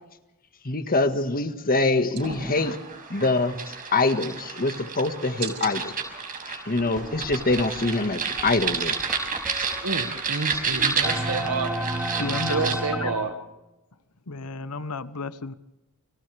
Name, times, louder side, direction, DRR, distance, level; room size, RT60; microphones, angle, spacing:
voice 1, 0.6-2.8 3.1-3.5 3.9-5.9 6.5-9.0, left 3 dB, 40° left, 8 dB, 1.7 m, -24 dB
sound 1, 2.2-12.8, right 5 dB, 40° right, 5.7 m, -31 dB
sound 2, 6.8-13.1, right 1 dB, 5° right, 4.7 m, -33 dB
voice 2, 9.8-11.7 12.5-13.3, right 4 dB, 80° right, 5 dB, 1.9 m, -29 dB
voice 3, 12.2-13.1 14.3-15.5, left 4 dB, 80° left, 13 dB, 1.1 m, -33 dB
29.5 x 26.0 x 3.5 m, 1.0 s
head